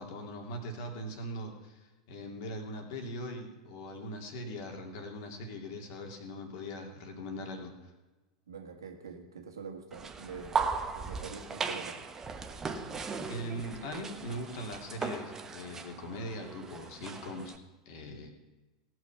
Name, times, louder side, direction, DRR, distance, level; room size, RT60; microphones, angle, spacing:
voice 1, 0.0-7.9 12.9-17.5 17.9-18.3, equal, 55° left, 3 dB, 2.4 m, -41 dB
voice 2, 8.5-12.0 12.7-12.9, right 5 dB, 75° right, 4 dB, 1.7 m, -45 dB
sound 1, 9.9-17.6, right 5 dB, 20° right, 1.1 m, -37 dB
18.5 x 6.3 x 5.7 m, 1.1 s
figure-of-eight pair, 90°, 2 cm